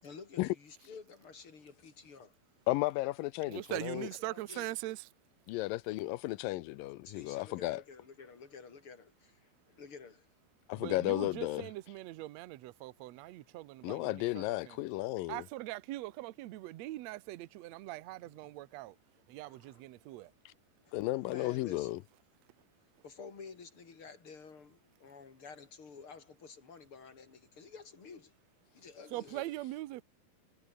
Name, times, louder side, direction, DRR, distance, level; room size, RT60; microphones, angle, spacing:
voice 1, 0.0-2.4 4.2-4.7 7.0-9.5 9.8-10.3 18.4-18.5 19.5-19.8 20.8-21.0 21.3-22.0 23.0-28.3 28.7-29.5, left 5 dB, 35° left, 4.1 m, -51 dB
voice 2, 2.7-4.1 5.5-7.8 10.7-11.7 13.8-15.4 20.9-22.0, left 18 dB, 80° left, 2.3 m, -34 dB
voice 3, 3.5-5.1 10.7-14.8 15.3-18.9 19.3-20.3 29.1-30.0, right 17 dB, 75° right, 1.6 m, -42 dB
omnidirectional pair, 4.2 m